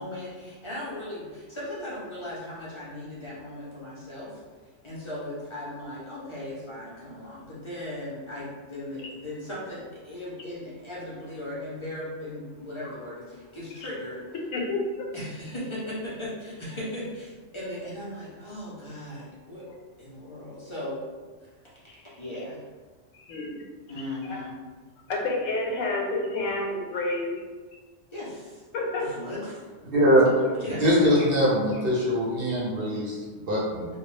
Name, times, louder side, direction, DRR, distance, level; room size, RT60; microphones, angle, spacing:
voice 1, 0.0-4.4 4.8-14.2 15.1-19.7 20.0-21.0 21.4-21.5 22.2-22.6 23.9-24.5 28.1-28.6 29.0-29.4 30.5-31.1, left 1 dB, 40° left, -8 dB, 0.4 m, -37 dB
voice 2, 14.5-14.8 23.2-23.6 25.1-27.3 28.7-29.1, left 2 dB, 90° left, -1 dB, 1.0 m, -28 dB
voice 3, 29.9-30.3 30.8-33.9, equal, 60° right, -6 dB, 0.7 m, -22 dB
2.2 x 2.0 x 3.1 m, 1.4 s
omnidirectional pair, 1.3 m